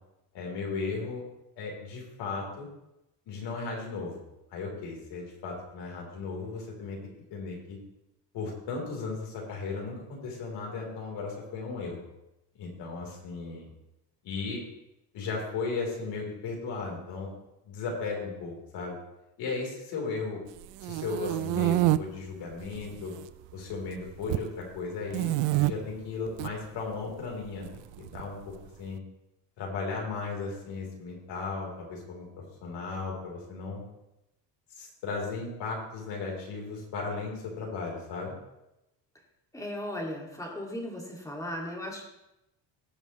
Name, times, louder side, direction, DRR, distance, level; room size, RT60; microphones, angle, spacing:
voice 1, 0.3-1.2 1.6-2.7 3.3-4.2 4.5-7.0 7.3-7.8 8.3-12.0 12.6-13.7 14.2-14.6 15.1-17.3 17.6-19.0 19.4-20.4 20.8-23.1 23.5-25.3 25.6-27.7 28.0-28.5 28.8-29.0 29.6-32.3 32.6-33.8 34.8-38.3, left 4 dB, 65° left, -1 dB, 3.7 m, -36 dB
sound 1, 20.6-22.0 22.6-23.2 23.5-24.5 25.1-25.7 26.3-26.5 27.6-28.6, right 17 dB, 75° right, 0.5 m, -27 dB
voice 2, 39.5-42.0, left 1 dB, 5° left, -1 dB, 2.2 m, -36 dB
18.5 x 7.5 x 3.1 m, 0.90 s
cardioid pair, 150°, 44 cm